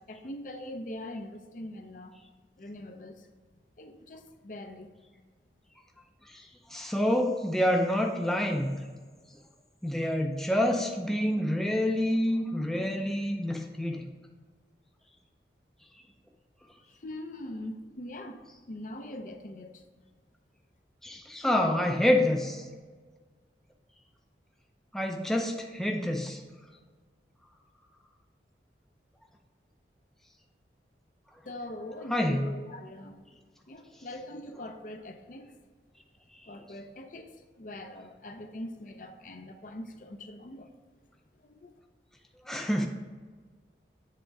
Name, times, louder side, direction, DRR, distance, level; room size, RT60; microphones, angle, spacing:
voice 1, 0.0-2.1 2.6-3.3 3.8-4.9 16.9-19.8 31.5-33.2 33.7-35.5 36.5-40.7 41.4-41.7, left 1 dB, 45° left, 5 dB, 0.6 m, -42 dB
voice 2, 6.3-8.7 9.8-14.0 21.0-22.7 24.9-26.4 32.1-32.4 42.4-42.9, left 1 dB, ahead, 1 dB, 0.5 m, -27 dB
7.7 x 3.8 x 4.6 m, 1.4 s
head